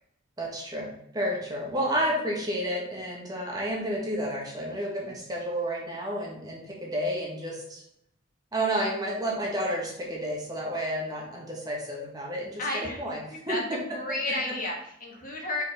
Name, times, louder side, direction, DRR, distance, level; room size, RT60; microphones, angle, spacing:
voice 1, 0.4-0.9 1.1-7.8 8.5-13.2 13.5-13.6, equal, 20° right, -3 dB, 1.6 m, -31 dB
voice 2, 12.6-13.0 13.3-15.6, left 2 dB, 45° left, 0 dB, 1.3 m, -32 dB
5.6 x 4.5 x 4.3 m, 0.74 s
head